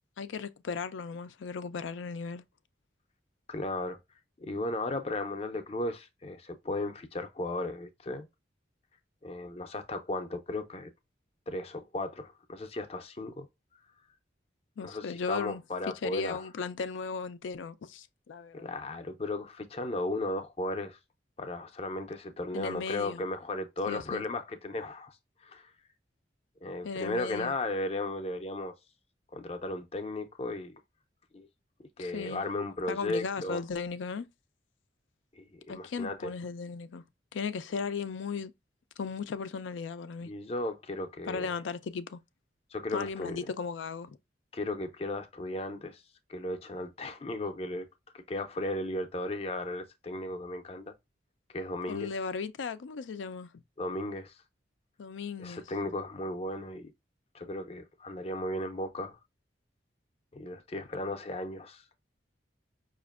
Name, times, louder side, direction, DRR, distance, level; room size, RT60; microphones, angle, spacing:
voice 1, 0.2-2.4 14.8-15.6 16.0-18.7 22.5-23.2 23.9-24.2 26.8-27.5 32.0-32.4 32.9-34.3 35.7-37.0 37.3-38.5 39.0-40.3 41.3-42.2 42.9-44.2 51.9-53.5 55.0-55.6, left 5 dB, 85° left, 0.4 m, -36 dB
voice 2, 3.5-4.0 4.4-8.3 9.2-10.9 11.5-13.5 14.8-16.5 18.5-21.0 21.4-25.2 25.4-25.7 26.6-28.7 29.3-30.8 31.3-31.5 32.0-33.6 35.4-36.3 40.2-41.5 42.7-43.4 44.5-46.0 46.3-47.9 48.1-50.9 51.5-52.1 53.8-54.4 55.4-56.9 57.3-59.2 60.3-61.8, left 2 dB, 35° left, 0.5 m, -35 dB
5.1 x 2.5 x 2.3 m
head